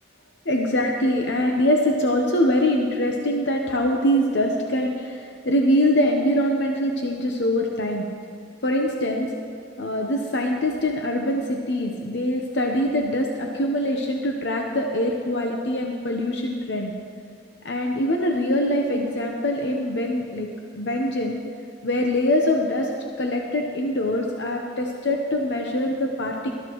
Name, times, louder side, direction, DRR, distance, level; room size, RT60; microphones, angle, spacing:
voice 1, 0.5-8.0 8.6-9.3 9.8-16.9 17.6-20.5 20.7-21.4 21.8-26.6, left 1 dB, 65° left, 1 dB, 0.9 m, -23 dB
19.5 x 13.0 x 3.1 m, 2.5 s
head